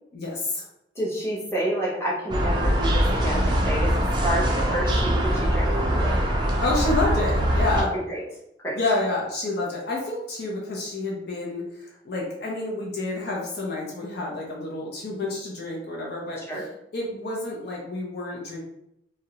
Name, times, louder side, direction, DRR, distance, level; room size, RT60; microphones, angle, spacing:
voice 1, 0.1-0.7 6.6-7.9 8.7-16.4 16.9-18.6, left 2 dB, 60° left, -2 dB, 0.6 m, -29 dB
voice 2, 0.9-6.2 7.9-8.2 8.6-8.8 16.4-16.6, right 1 dB, 15° left, -7 dB, 0.8 m, -29 dB
sound 1, 2.3-7.8, equal, 25° right, 0.3 m, -23 dB
2.4 x 2.0 x 2.8 m, 0.78 s
head